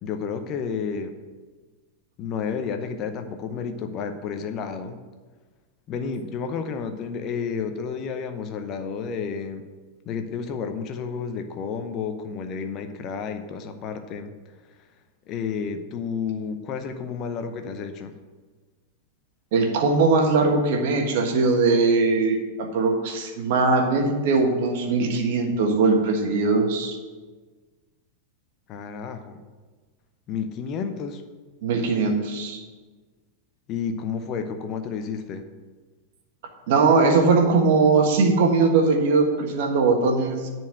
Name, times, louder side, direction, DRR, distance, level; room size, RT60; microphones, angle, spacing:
voice 1, 0.0-1.2 2.2-5.0 5.9-9.7 10.0-14.3 15.3-18.1 28.7-29.4 30.3-31.2 33.7-35.5, left 6 dB, 35° left, 8 dB, 0.8 m, -31 dB
voice 2, 19.5-27.0 31.6-32.6 36.7-40.5, right 4 dB, 50° right, 3 dB, 1.5 m, -20 dB
10.5 x 4.6 x 7.8 m, 1.3 s
figure-of-eight pair, 90°, 0 cm